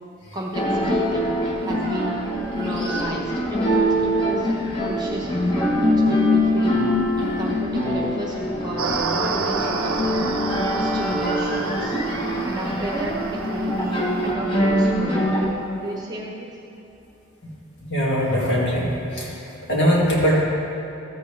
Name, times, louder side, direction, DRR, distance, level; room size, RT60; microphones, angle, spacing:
voice 1, 0.3-1.2 1.6-2.1 2.6-6.8 7.2-10.2 10.6-11.9 12.4-16.5, right 1 dB, 20° right, -2 dB, 0.9 m, -32 dB
sound 1, 0.5-15.5, equal, 25° left, 1.1 m, -23 dB
sound 2, 8.8-14.3, right 4 dB, 85° right, 0.7 m, -30 dB
voice 2, 17.8-19.4 19.7-20.4, equal, 55° left, -5 dB, 2.4 m, -21 dB
14.0 x 8.1 x 3.4 m, 2.9 s
head